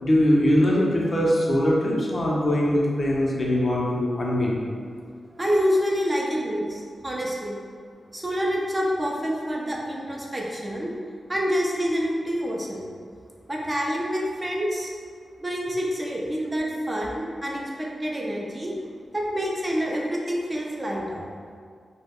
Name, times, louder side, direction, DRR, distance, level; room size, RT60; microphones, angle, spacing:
voice 1, 0.0-4.6, left 1 dB, 45° left, -4 dB, 0.6 m, -22 dB
voice 2, 5.3-7.6 8.1-10.9 11.3-12.8 13.5-14.9 15.4-18.7 19.1-21.3, equal, 25° right, -3 dB, 0.4 m, -27 dB
2.3 x 2.0 x 3.5 m, 2.1 s
cardioid pair, 60°, 0 cm